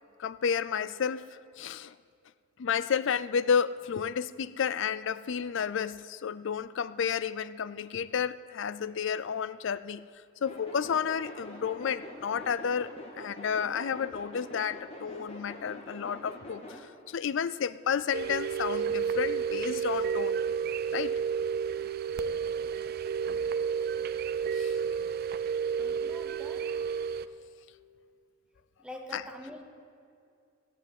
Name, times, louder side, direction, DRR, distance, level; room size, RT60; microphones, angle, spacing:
voice 1, 0.2-1.2 1.6-1.9 2.6-10.0 10.4-20.3 20.9-21.1 24.5-24.8 29.1-29.3, left 7 dB, 65° left, 15 dB, 0.4 m, -31 dB
sound 1, 10.5-16.8, left 1 dB, 30° left, 1.8 m, -45 dB
sound 2, 18.1-27.3, right 7 dB, 50° right, 0.4 m, -31 dB
voice 2, 25.8-26.9 28.8-29.6, left 1 dB, 5° right, 2 dB, 1.4 m, -45 dB
14.5 x 8.4 x 9.1 m, 2.4 s
head